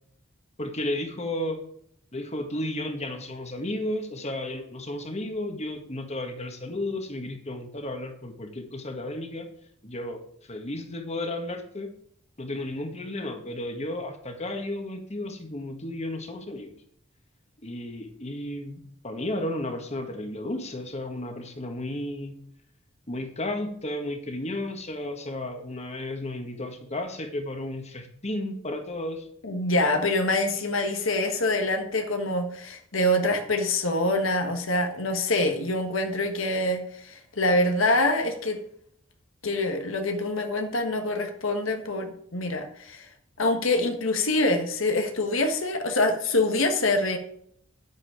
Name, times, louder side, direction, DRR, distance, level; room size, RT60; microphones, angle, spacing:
voice 1, 0.6-1.6 2.1-9.5 9.8-10.2 10.5-11.9 12.4-16.7 17.6-22.4 23.1-29.3, left 1 dB, 35° left, 5 dB, 1.6 m, -33 dB
voice 2, 29.4-38.6 39.4-43.1 43.4-47.2, left 2 dB, 85° left, 5 dB, 1.5 m, -25 dB
9.9 x 8.4 x 4.9 m, 0.66 s
head